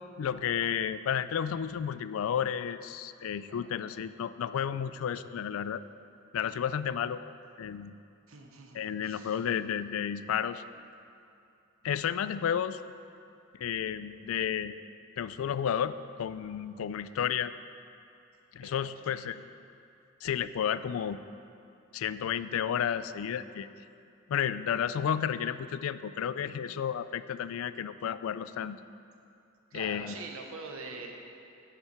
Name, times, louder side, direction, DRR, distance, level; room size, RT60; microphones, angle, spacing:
voice 1, 0.2-5.8 6.3-7.2 7.6-7.9 8.7-10.6 11.8-12.8 13.6-14.7 15.2-17.5 18.5-19.4 20.2-21.2 21.9-23.7 24.3-28.8 29.7-30.1, left 8 dB, 80° left, 14 dB, 0.3 m, -32 dB
voice 2, 8.3-9.4 18.6-19.2 29.7-31.1, right 3 dB, 90° right, 2 dB, 1.0 m, -44 dB
10.0 x 7.2 x 4.4 m, 2.6 s
head